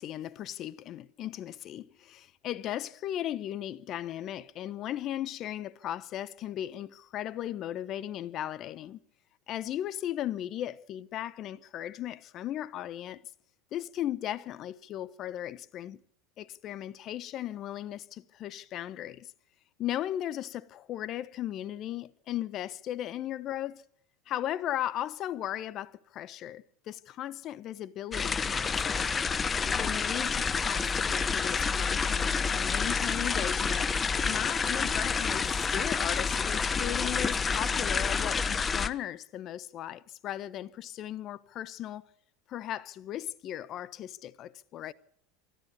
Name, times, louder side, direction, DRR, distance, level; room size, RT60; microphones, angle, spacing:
voice 1, 0.0-9.0 9.5-13.2 13.7-16.0 16.4-19.3 19.8-23.8 24.3-29.1 29.8-33.9 34.2-42.0 42.5-44.9, left 12 dB, 45° left, 1.1 m, -37 dB
sound 1, 28.1-38.9, left 5 dB, 25° left, 1.2 m, -29 dB
24.5 x 13.5 x 8.3 m
hypercardioid pair, 85°, 0 cm